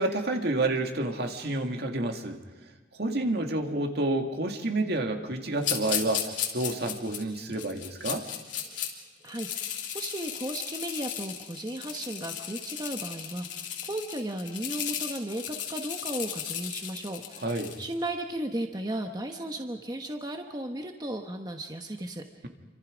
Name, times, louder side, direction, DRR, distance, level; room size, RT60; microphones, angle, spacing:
voice 1, 0.0-2.4 3.0-8.2 17.4-17.7, right 2 dB, 60° right, 4 dB, 2.2 m, -29 dB
sound 1, 5.6-8.9 9.3-17.9, left 9 dB, 80° left, 3.3 m, -35 dB
voice 2, 9.2-22.2, right 1 dB, 20° right, 4 dB, 1.2 m, -35 dB
28.5 x 25.5 x 5.2 m, 1.2 s
head